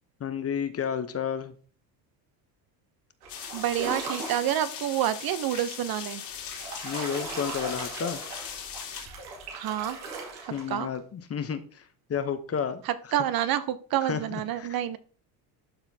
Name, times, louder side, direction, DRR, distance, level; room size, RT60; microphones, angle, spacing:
voice 1, 0.2-1.5 6.8-8.2 10.5-12.8 14.0-14.7, left 7 dB, 30° left, 10 dB, 0.8 m, -31 dB
sound 1, 3.2-4.6 6.2-11.0, right 3 dB, 90° right, 2.3 m, -39 dB
sound 2, 3.3-9.1, left 8 dB, 60° left, 2.3 m, -39 dB
voice 2, 3.5-6.2 9.5-10.0 10.4-10.9 12.8-15.0, right 11 dB, 50° right, 13 dB, 0.7 m, -28 dB
12.0 x 4.2 x 2.7 m, 0.41 s
supercardioid pair, 95°, 46 cm